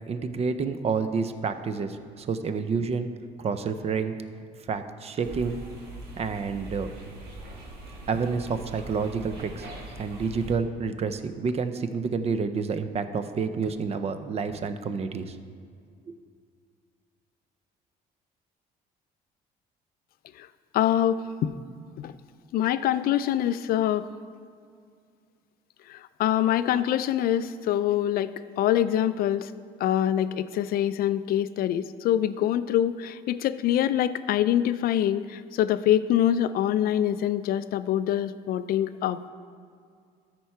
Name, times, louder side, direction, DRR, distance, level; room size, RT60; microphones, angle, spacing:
voice 1, 0.1-3.1 3.4-4.1 4.7-5.6 6.2-6.9 8.1-9.7 10.0-15.4 16.1-16.2, right 5 dB, 35° right, 10 dB, 0.6 m, -29 dB
sound 1, 5.2-10.5, right 1 dB, 70° right, 1.8 m, -42 dB
voice 2, 20.7-21.6 22.0-22.1 22.5-24.1 25.9-29.5 29.8-39.3, left 11 dB, 60° left, 14 dB, 0.4 m, -25 dB
13.0 x 4.5 x 4.7 m, 2.2 s
cardioid pair, 110°, 17 cm